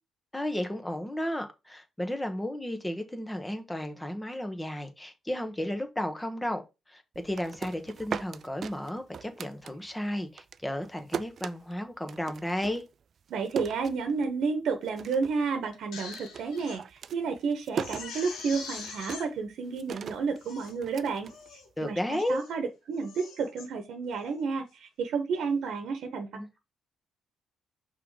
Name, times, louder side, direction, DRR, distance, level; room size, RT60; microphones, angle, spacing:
voice 1, 0.3-6.6 6.9-12.8 21.8-22.4 26.3-26.5, left 1 dB, 10° left, 1.2 m, -33 dB
sound 1, 7.1-10.1 10.4-14.5 14.8-15.5 15.7-22.0, right 7 dB, 55° right, 0.4 m, -39 dB
voice 2, 13.3-26.3, right 5 dB, 75° right, 1.1 m, -31 dB
Crying sobbing, 15.7-16.8 17.2-17.3 17.7-19.3 19.9-20.0 20.4-20.8 21.3-21.7 22.1-22.5 22.9-23.7 24.1-24.4, left 5 dB, 85° left, 1.9 m, -44 dB
5.7 x 3.9 x 4.8 m
cardioid pair, 90°, 0 cm